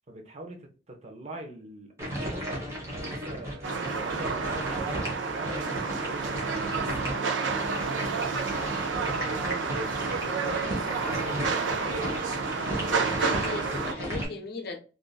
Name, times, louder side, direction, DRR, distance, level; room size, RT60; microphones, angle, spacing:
voice 1, 0.1-12.1, right 2 dB, 35° right, 0.8 m, -44 dB
sound 1, 2.0-14.3, equal, 15° right, 1.2 m, -35 dB
sound 2, 3.6-13.9, right 5 dB, 90° right, 0.5 m, -30 dB
voice 2, 10.2-10.9 13.0-14.8, left 3 dB, 60° left, 0.6 m, -38 dB
3.6 x 2.5 x 2.3 m
head